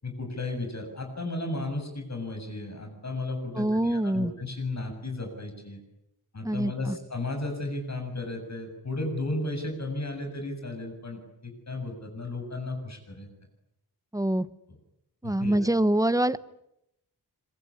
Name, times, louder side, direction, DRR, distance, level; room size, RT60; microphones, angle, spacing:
voice 1, 0.0-5.8 6.3-13.3 15.2-15.7, left 2 dB, 45° left, 4 dB, 7.3 m, -34 dB
voice 2, 3.6-4.3 6.4-7.0 14.1-14.5 15.2-16.4, right 1 dB, 10° right, 16 dB, 1.0 m, -25 dB
26.5 x 22.5 x 10.0 m, 0.81 s
wide cardioid pair, 130°, 39 cm